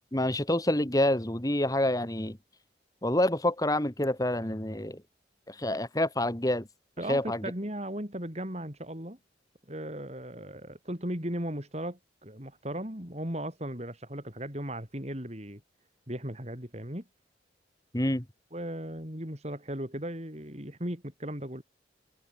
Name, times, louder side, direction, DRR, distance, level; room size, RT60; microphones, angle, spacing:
voice 1, 0.1-2.4 3.0-5.0 5.5-6.7 7.1-7.4 17.9-18.2, left 1 dB, 20° left, 1.8 m, -27 dB
voice 2, 7.0-9.2 9.7-15.6 16.1-17.0 18.5-21.6, right 1 dB, 35° right, 5.0 m, -37 dB
head